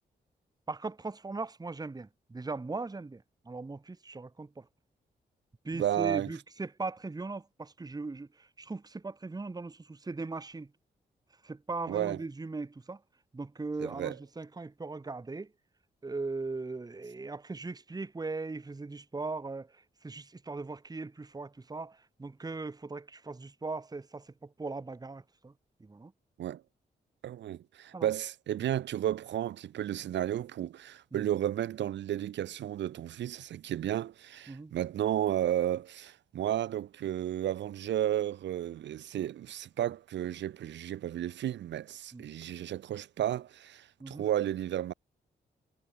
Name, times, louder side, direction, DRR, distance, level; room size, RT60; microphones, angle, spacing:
voice 1, 0.7-4.7 5.6-10.7 11.4-13.0 13.3-15.5 16.0-25.5 25.8-26.1 27.9-28.1 31.1-31.2 34.5-34.7 42.1-42.3 44.0-44.3, right 3 dB, 20° right, 0.9 m, -39 dB
voice 2, 5.7-6.3 11.9-12.2 13.8-14.1 26.4-26.6 27.2-44.9, right 11 dB, 80° right, 0.9 m, -33 dB
supercardioid pair, 50°, 18 cm